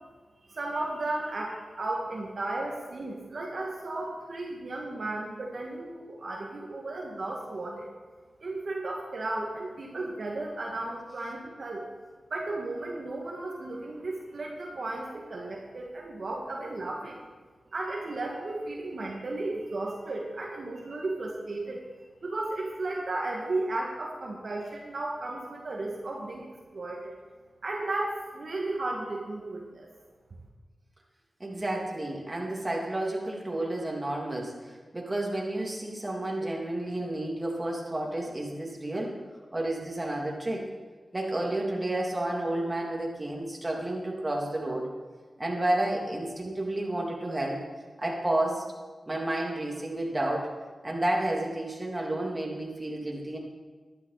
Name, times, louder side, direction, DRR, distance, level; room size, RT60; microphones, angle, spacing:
voice 1, 0.5-7.9 8.4-11.9 12.3-17.2 17.7-21.8 22.2-27.2 27.6-29.9, right 2 dB, 65° right, -2 dB, 2.0 m, -34 dB
voice 2, 31.4-39.2 39.5-40.6 41.1-44.9 45.4-47.6 48.0-48.6 49.1-50.5 50.8-53.4, right 1 dB, 25° right, -2 dB, 3.1 m, -31 dB
12.0 x 12.0 x 4.2 m, 1.4 s
cardioid pair, 50°, 0 cm